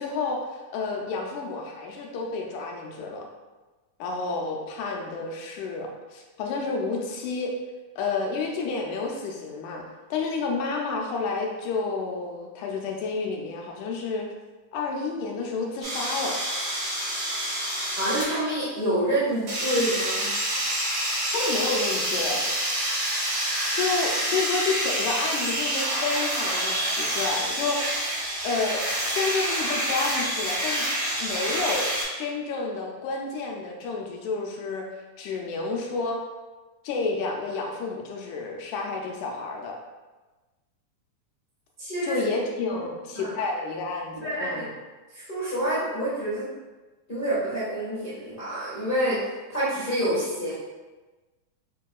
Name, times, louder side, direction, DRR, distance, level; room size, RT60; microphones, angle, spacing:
voice 1, 0.0-3.3 4.0-7.5 8.0-14.3 14.7-16.4 21.3-22.5 23.7-27.9 28.4-30.8 31.2-31.9 32.2-34.9 35.2-36.2 36.8-39.8 42.0-44.7, left 4 dB, 80° left, 0 dB, 2.0 m, -30 dB
sound 1, 15.8-18.4 19.5-32.0, right 1 dB, 65° right, 2.5 m, -27 dB
voice 2, 18.0-20.3 41.8-42.2 42.7-42.8 43.1-43.3 44.1-44.6 45.1-46.5 47.1-49.2 49.5-50.5, right 1 dB, 40° left, -12 dB, 0.7 m, -27 dB
6.5 x 2.7 x 2.3 m, 1.2 s
omnidirectional pair, 3.6 m